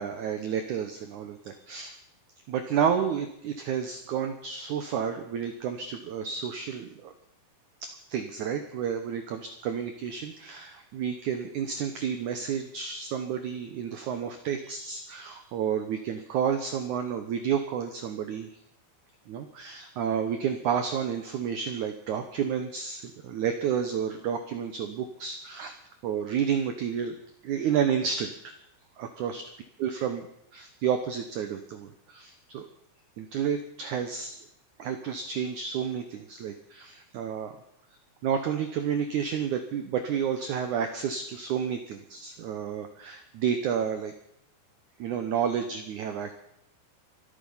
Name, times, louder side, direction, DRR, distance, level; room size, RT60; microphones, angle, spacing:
voice 1, 0.0-1.9 2.5-7.1 7.8-18.5 19.3-25.7 26.0-27.1 27.4-28.5 29.0-29.4 29.8-30.2 30.5-32.7 33.2-34.4 34.8-37.5 38.2-44.1 45.0-46.3, right 8 dB, 85° right, 7 dB, 1.7 m, -30 dB
24.5 x 8.6 x 5.6 m, 0.74 s
omnidirectional pair, 4.9 m